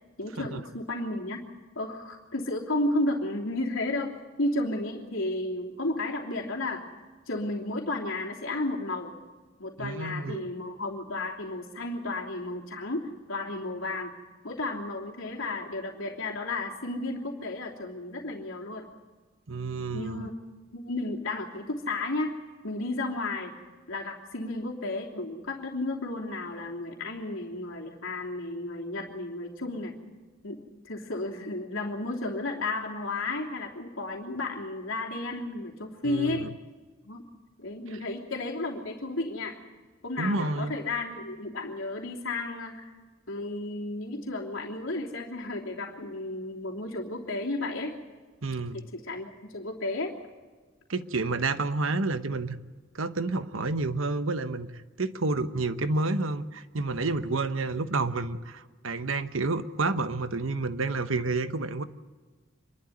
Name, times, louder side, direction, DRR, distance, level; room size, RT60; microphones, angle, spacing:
voice 1, 0.2-1.5 1.7-6.9 7.3-9.1 9.6-14.1 14.4-18.9 19.9-20.3 20.7-22.3 22.6-23.5 23.9-29.9 30.4-36.5 37.0-37.2 37.6-39.6 40.0-42.9 43.3-47.9 48.7-50.1, left 2 dB, 85° left, -1 dB, 3.1 m, -33 dB
voice 2, 9.8-10.5 19.5-20.3 36.0-36.5 40.2-40.8 48.4-48.8 50.9-52.5 52.9-54.7 55.0-61.8, right 3 dB, 85° right, 11 dB, 1.1 m, -29 dB
26.5 x 12.0 x 9.4 m, 1.4 s
head